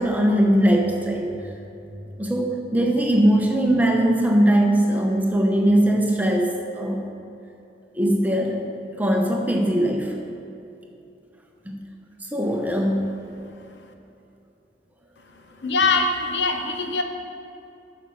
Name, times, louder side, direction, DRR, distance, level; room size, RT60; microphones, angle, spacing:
voice 1, 0.0-1.3 2.2-7.1 7.9-8.6 9.0-10.2 11.7-11.8 12.3-13.2, right 1 dB, 10° right, 1 dB, 0.8 m, -20 dB
voice 2, 15.6-17.0, left 3 dB, 75° left, 4 dB, 0.8 m, -22 dB
9.1 x 6.1 x 5.6 m, 2.7 s
head